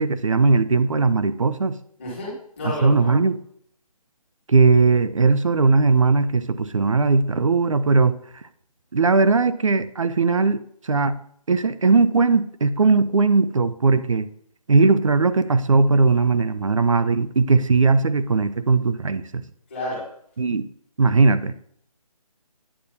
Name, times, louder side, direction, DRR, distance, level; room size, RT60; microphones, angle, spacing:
voice 1, 0.0-1.8 2.6-3.4 4.5-8.2 8.9-11.2 11.5-14.3 14.7-19.4 20.4-20.7 21.0-21.5, right 4 dB, 55° right, 13 dB, 0.5 m, -19 dB
voice 2, 2.0-3.1 19.7-20.1, left 1 dB, 20° left, -8 dB, 2.3 m, -31 dB
8.8 x 6.6 x 2.8 m, 0.65 s
hypercardioid pair, 180°, 19 cm